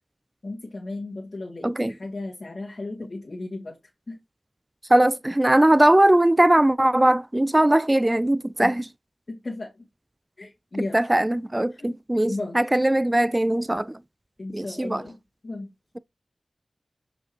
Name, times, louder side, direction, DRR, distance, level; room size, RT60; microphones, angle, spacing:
voice 1, 0.4-3.8 4.1-4.2 8.6-8.7 9.3-9.9 10.4-11.0 11.7-12.0 12.3-12.6 14.4-15.7, left 2 dB, 60° left, 1.8 m, -35 dB
voice 2, 4.9-8.7 10.9-14.0 14.5-15.0, right 1 dB, 20° right, 0.3 m, -20 dB
7.4 x 5.0 x 2.9 m
wide cardioid pair, 55°, 0 cm